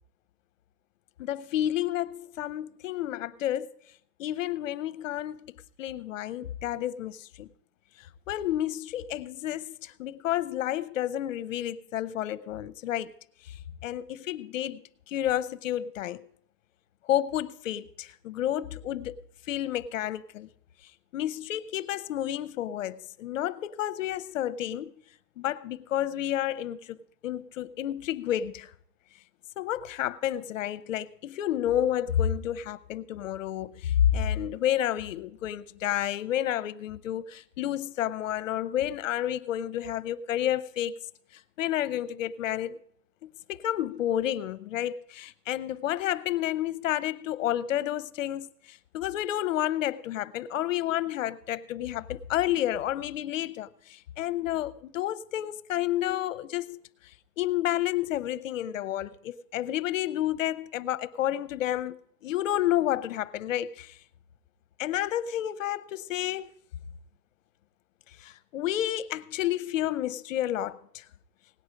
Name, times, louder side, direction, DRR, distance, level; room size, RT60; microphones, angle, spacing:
voice 1, 1.2-3.7 4.2-5.4 5.8-7.5 8.3-13.1 13.8-16.2 17.1-19.2 19.5-20.5 21.1-24.9 25.4-27.0 27.2-28.7 29.6-40.9 41.6-42.8 43.2-56.8 57.4-62.0 62.2-63.9 64.8-66.5 68.2-71.0, left 12 dB, 55° left, 0.7 m, -30 dB
17.5 x 9.4 x 5.1 m
supercardioid pair, 175°, 48 cm